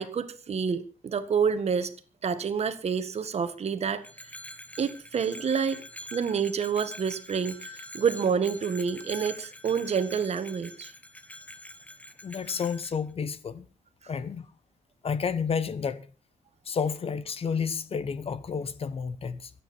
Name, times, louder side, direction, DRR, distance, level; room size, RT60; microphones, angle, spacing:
voice 1, 0.0-1.9 2.2-4.0 4.8-5.8 6.1-10.9, right 6 dB, 50° right, 1.8 m, -28 dB
Bell, 4.0-13.0, left 1 dB, 10° left, 1.6 m, -45 dB
voice 2, 12.2-13.7 14.1-14.5 15.0-16.1 16.6-19.5, left 6 dB, 45° left, 1.1 m, -31 dB
24.5 x 9.3 x 4.4 m
wide cardioid pair, 130°, 13 cm